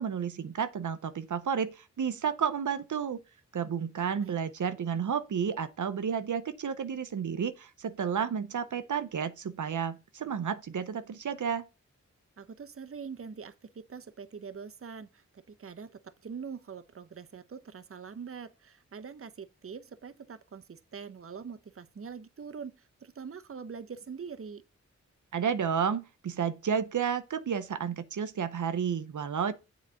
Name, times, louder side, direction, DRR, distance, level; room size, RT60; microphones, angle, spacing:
voice 1, 0.0-3.2 3.5-11.7 25.3-29.5, right 7 dB, 80° right, 0.7 m, -31 dB
voice 2, 12.4-24.6, right 6 dB, 50° right, 0.7 m, -44 dB
7.5 x 4.0 x 6.2 m
cardioid pair, 50°, 30 cm